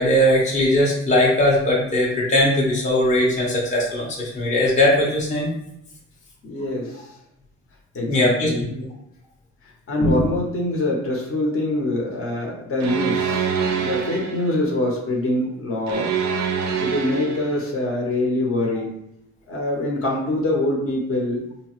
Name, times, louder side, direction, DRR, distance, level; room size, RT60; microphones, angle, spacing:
voice 1, 0.0-5.5 8.0-8.5 10.0-10.2, left 1 dB, 25° left, -4 dB, 0.8 m, -19 dB
voice 2, 6.4-7.1 7.9-8.7 9.9-13.5 13.8-16.1 16.8-18.9 19.5-21.4, left 1 dB, 45° left, -2 dB, 0.9 m, -24 dB
sound 1, 12.8-14.6 15.9-17.6, right 6 dB, 65° right, 0.5 m, -25 dB
3.0 x 2.0 x 2.9 m, 0.81 s
cardioid pair, 90°, 30 cm